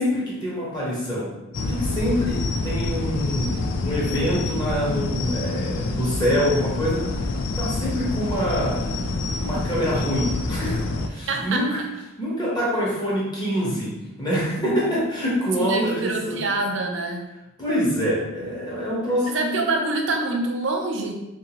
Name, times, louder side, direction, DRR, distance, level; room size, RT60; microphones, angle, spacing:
voice 1, 0.0-7.1 7.6-8.9 9.4-11.8 12.2-13.9 14.2-16.3 17.6-19.6, equal, 20° left, -7 dB, 1.0 m, -25 dB
sound 1, 1.5-11.1, left 3 dB, 60° left, 0.3 m, -27 dB
voice 2, 11.3-11.7 15.6-17.2 19.3-21.1, right 2 dB, 60° right, 2 dB, 0.5 m, -25 dB
3.7 x 2.6 x 2.9 m, 0.96 s
head